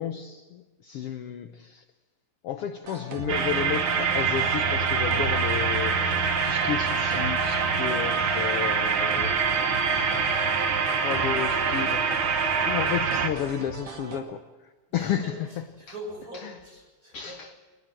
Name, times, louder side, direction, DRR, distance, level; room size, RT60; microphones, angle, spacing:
voice 1, 0.0-1.8 2.4-9.4 11.0-12.1 12.7-14.4 14.9-15.6 16.4-16.6 17.1-17.5, left 9 dB, 75° left, 8 dB, 1.3 m, -32 dB
sound 1, 2.9-14.2, right 4 dB, 70° right, 3.7 m, -39 dB
sound 2, 3.3-13.3, right 5 dB, 50° right, 1.9 m, -25 dB
voice 2, 14.9-15.4 15.8-17.6, right 1 dB, 25° right, 0 dB, 7.0 m, -42 dB
24.0 x 20.0 x 7.7 m, 1.3 s
omnidirectional pair, 3.7 m